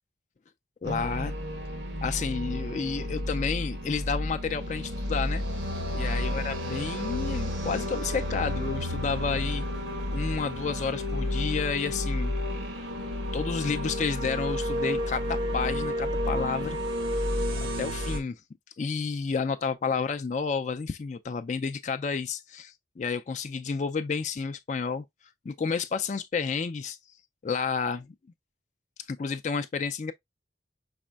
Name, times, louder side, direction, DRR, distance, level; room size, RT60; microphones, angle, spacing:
voice 1, 0.8-1.4 2.0-5.4 5.9-9.6 10.1-12.3 13.3-16.8 17.8-18.4 18.8-25.0 25.5-27.0 27.4-28.1 29.1-30.1, left 5 dB, 40° left, 0.3 m, -30 dB
sound 1, 0.8-18.2, left 1 dB, 85° right, 1.3 m, -31 dB
5.1 x 4.2 x 2.3 m
head